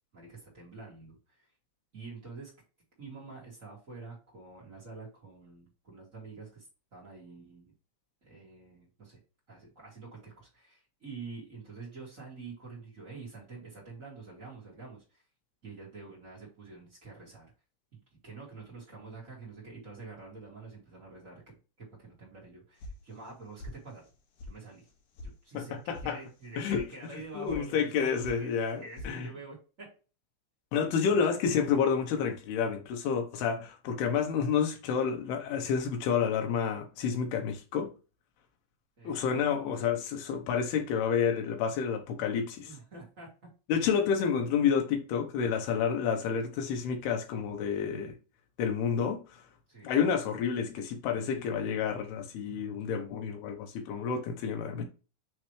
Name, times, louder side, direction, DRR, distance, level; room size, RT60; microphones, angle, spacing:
voice 1, 0.1-1.5 1.9-2.5 3.0-6.6 6.9-7.7 8.2-9.2 9.5-15.2 15.6-17.5 18.2-24.0 24.4-24.9 25.2-29.9 39.0-39.8 42.6-43.3 49.7-49.9, right 3 dB, 45° right, 0.9 m, -47 dB
sound 1, 22.8-23.3 23.6-24.1 24.4-24.5 24.9-25.3 25.6-26.1 26.4-26.8 27.2-27.6 27.9-28.4 28.6-29.1, left 2 dB, 65° left, 3.9 m, -44 dB
voice 2, 25.5-26.2 26.6-26.8 27.4-29.3 30.7-37.9 39.0-42.7 43.7-48.1 48.6-49.4 49.8-54.8, left 7 dB, 80° left, 2.3 m, -29 dB
9.3 x 3.3 x 3.2 m
omnidirectional pair, 5.8 m